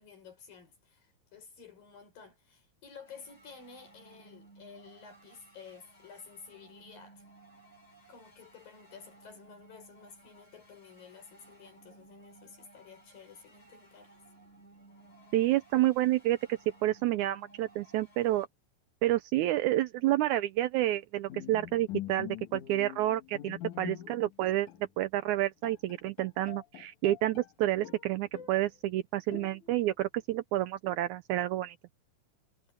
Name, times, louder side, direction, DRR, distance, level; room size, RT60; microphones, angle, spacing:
voice 1, 0.0-7.2 8.1-14.2 23.8-24.1, left 6 dB, 85° left, 7.7 m, -52 dB
sound 1, 3.1-18.5, right 2 dB, 35° left, 5.4 m, -58 dB
voice 2, 15.3-18.5 19.0-24.7 25.0-31.8, right 14 dB, 75° right, 1.8 m, -29 dB
Bowed string instrument, 21.3-24.3 24.7-24.9 25.3-25.4 25.6-27.5 27.8-28.7 29.3-29.9, left 13 dB, 65° left, 2.9 m, -44 dB
omnidirectional pair, 3.9 m